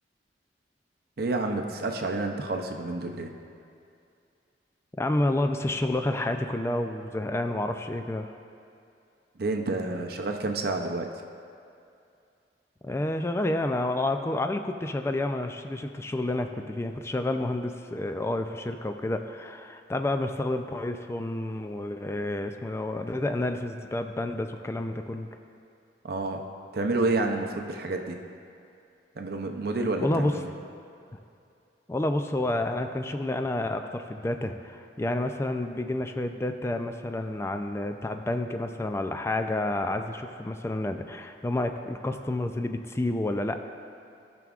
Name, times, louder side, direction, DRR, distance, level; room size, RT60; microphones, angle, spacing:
voice 1, 1.2-3.3 9.4-11.1 26.0-26.5 26.7-28.2 29.2-30.5, right 2 dB, 60° right, 4 dB, 0.6 m, -29 dB
voice 2, 4.9-8.3 12.8-25.3 30.0-30.3 31.9-43.6, left 1 dB, 15° left, 6 dB, 0.3 m, -29 dB
14.0 x 6.0 x 2.4 m, 2.5 s
head